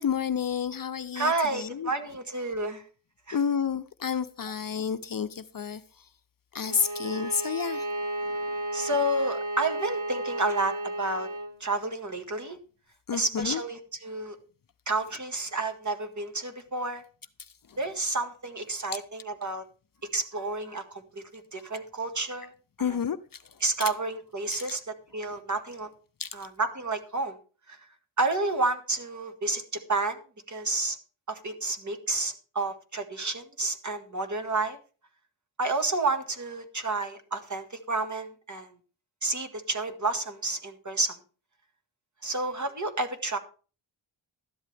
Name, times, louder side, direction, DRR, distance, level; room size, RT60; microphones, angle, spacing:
voice 1, 0.0-1.9 3.3-6.1 6.5-8.6 13.1-13.6 17.4-17.8 22.8-23.9 24.5-24.7 25.3-25.4 26.2-26.4, left 7 dB, 45° left, 0.6 m, -31 dB
voice 2, 1.2-2.8 3.3-3.4 8.7-11.3 11.6-12.6 13.1-14.4 14.9-17.0 17.8-19.6 20.1-22.5 23.6-24.8 25.1-25.9 26.4-27.4 27.7-27.8 28.2-30.2 30.5-31.0 31.3-34.8 35.6-38.7 39.2-41.2 42.2-43.4, right 2 dB, 40° right, 1.8 m, -30 dB
Bowed string instrument, 6.6-11.6, right 1 dB, 70° right, 2.0 m, -33 dB
12.5 x 11.0 x 3.4 m
cardioid pair, 80°, 47 cm